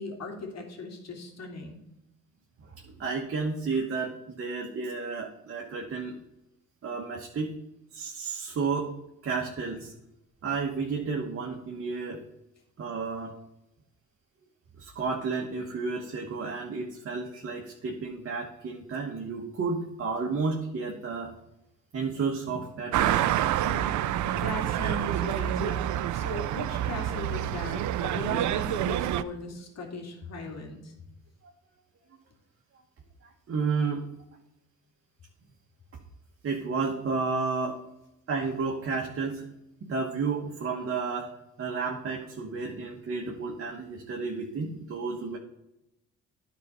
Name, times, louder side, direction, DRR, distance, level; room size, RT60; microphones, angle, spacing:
voice 1, 0.0-1.8 23.6-24.0 24.3-25.9 26.1-30.9, left 2 dB, 60° left, 3 dB, 2.3 m, -38 dB
voice 2, 3.0-6.1 6.8-7.5 7.9-8.9 9.2-9.9 10.4-12.2 12.8-13.4 14.8-21.3 21.9-23.1 33.5-34.0 36.4-37.8 38.3-39.5 39.8-41.3 41.6-45.4, right 4 dB, 45° right, 0 dB, 1.3 m, -31 dB
sound 1, 22.9-29.2, right 12 dB, 75° right, 0.5 m, -28 dB
10.5 x 4.1 x 5.5 m, 0.87 s
cardioid pair, 90°, 30 cm